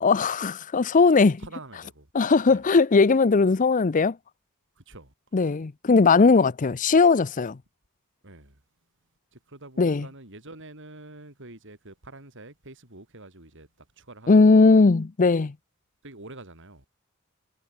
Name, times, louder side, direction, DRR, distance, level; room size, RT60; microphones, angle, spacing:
voice 1, 0.0-1.4 2.1-4.2 5.3-7.6 9.8-10.1 14.3-15.5, left 4 dB, 35° left, 0.5 m, -19 dB
voice 2, 1.4-2.1 2.5-2.6 4.8-5.1 8.2-8.6 9.3-14.8 16.0-16.9, right 2 dB, 60° right, 5.9 m, -46 dB
head